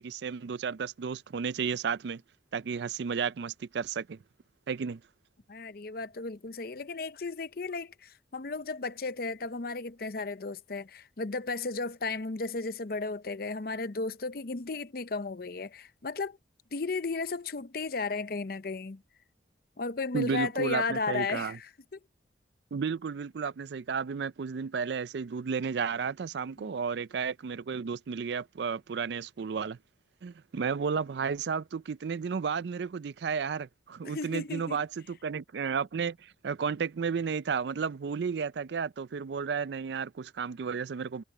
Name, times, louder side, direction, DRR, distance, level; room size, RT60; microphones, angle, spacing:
voice 1, 0.0-2.2 2.5-4.2 4.7-5.0 20.1-21.6 22.7-29.8 30.2-36.2 36.4-41.2, right 6 dB, 65° right, 0.4 m, -33 dB
voice 2, 5.5-16.4 16.7-19.0 19.8-22.0 26.6-26.8 34.0-34.8, left 3 dB, 50° left, 0.6 m, -34 dB
head